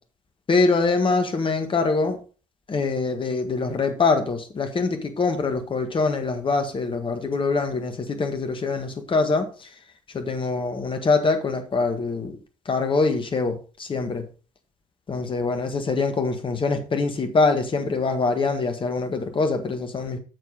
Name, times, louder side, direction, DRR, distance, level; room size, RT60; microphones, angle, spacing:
voice 1, 0.5-2.2 2.7-9.7 10.1-12.4 12.6-14.2 15.1-20.2, left 3 dB, 30° left, 6 dB, 1.6 m, -24 dB
7.2 x 6.2 x 5.0 m, 0.36 s
figure-of-eight pair, 50°, 17 cm